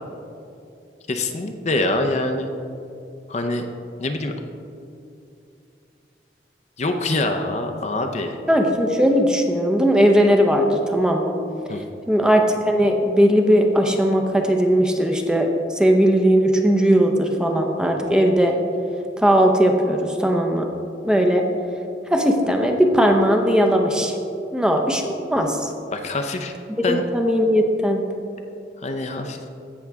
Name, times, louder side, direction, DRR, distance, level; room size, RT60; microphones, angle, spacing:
voice 1, 1.1-2.5 3.3-3.7 4.0-4.3 6.8-8.4 11.7-11.8 25.9-26.5 26.8-27.0 28.8-29.4, left 2 dB, 40° left, 5 dB, 0.6 m, -24 dB
voice 2, 8.5-11.3 12.1-18.5 19.2-20.7 21.0-21.4 22.1-24.1 24.5-25.7 26.8-28.0, equal, 5° right, 3 dB, 0.7 m, -18 dB
15.5 x 6.1 x 3.5 m, 2.6 s
head